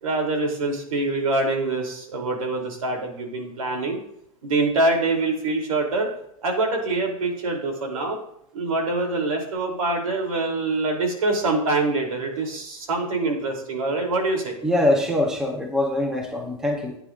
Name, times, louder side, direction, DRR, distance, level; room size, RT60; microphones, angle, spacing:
voice 1, 0.0-4.0 4.4-6.1 6.4-8.2 8.5-14.5, right 2 dB, 85° right, 2 dB, 2.9 m, -25 dB
voice 2, 14.6-17.0, left 1 dB, 5° right, 3 dB, 0.6 m, -23 dB
15.0 x 9.2 x 2.4 m, 0.73 s
supercardioid pair, 175°, 17 cm